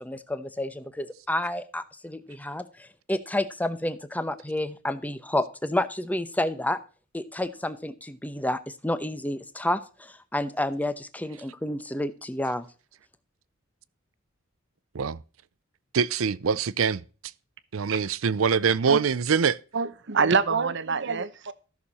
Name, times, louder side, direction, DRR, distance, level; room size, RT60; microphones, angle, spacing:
voice 1, 0.0-6.8 7.1-12.7, left 1 dB, 10° left, 0.8 m, -30 dB
voice 2, 15.9-17.0 17.7-19.6, right 6 dB, 80° right, 0.5 m, -24 dB
voice 3, 19.7-21.5, right 5 dB, 60° right, 0.9 m, -25 dB
14.0 x 6.7 x 4.1 m
head